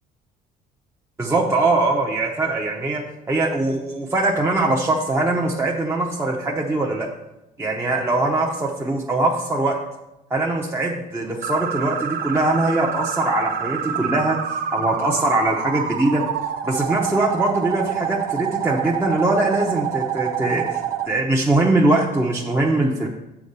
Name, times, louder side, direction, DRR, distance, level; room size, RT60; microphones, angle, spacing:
voice 1, 1.2-3.0 3.3-7.1 7.6-9.8 10.3-16.2 16.6-23.1, right 2 dB, 15° right, -2 dB, 0.8 m, -22 dB
sound 1, 11.4-21.1, right 9 dB, 60° right, 0.7 m, -27 dB
7.1 x 4.1 x 6.7 m, 0.91 s
cardioid pair, 110°, 17 cm